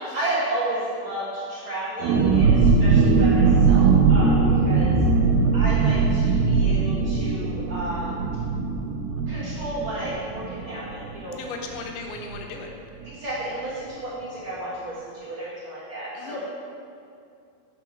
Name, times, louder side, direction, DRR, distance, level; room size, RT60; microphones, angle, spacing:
voice 1, 0.1-4.9 5.5-8.2 9.3-11.4 13.0-16.4, right 1 dB, 50° right, -11 dB, 1.6 m, -32 dB
sound 1, 2.0-11.4 11.7-11.8 12.1-12.4, right 4 dB, 85° right, 2.5 m, -20 dB
voice 2, 11.4-12.7 16.2-16.4, left 4 dB, 90° left, 2 dB, 2.8 m, -36 dB
8.2 x 4.7 x 5.8 m, 2.4 s
omnidirectional pair, 4.4 m